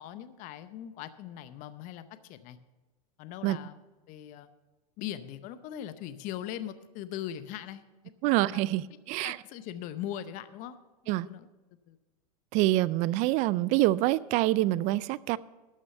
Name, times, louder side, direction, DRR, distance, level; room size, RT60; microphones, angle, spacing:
voice 1, 0.0-2.6 3.2-3.8 4.1-4.5 5.0-7.8 8.5-8.6 9.2-10.8 11.0-11.5 11.9-12.0, left 11 dB, 40° left, 12 dB, 0.7 m, -40 dB
voice 2, 8.2-9.4 11.1-11.3 12.5-15.4, right 16 dB, 40° right, 21 dB, 0.4 m, -26 dB
12.5 x 6.3 x 6.9 m, 1.2 s
hypercardioid pair, 120°, 19 cm